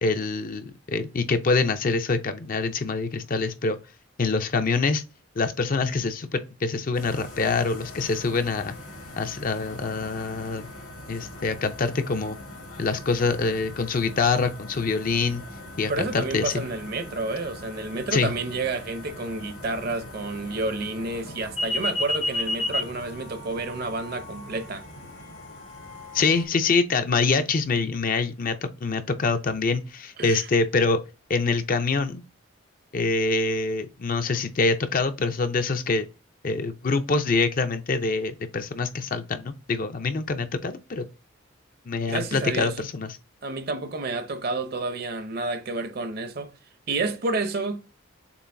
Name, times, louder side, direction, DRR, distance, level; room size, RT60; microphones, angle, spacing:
voice 1, 0.0-3.8 4.2-5.0 5.4-8.8 9.2-10.7 11.1-12.4 12.8-15.4 15.8-16.5 18.1-18.3 26.1-31.0 31.3-32.2 32.9-36.1 36.4-41.0 41.9-43.2, left 4 dB, 40° left, 0.5 m, -25 dB
sound 1, 6.9-26.5, left 1 dB, 80° left, 1.9 m, -37 dB
voice 2, 15.9-24.8 30.2-30.5 42.1-42.7 43.4-46.5 46.9-47.9, right 3 dB, 45° right, 0.7 m, -30 dB
6.9 x 2.5 x 2.6 m
head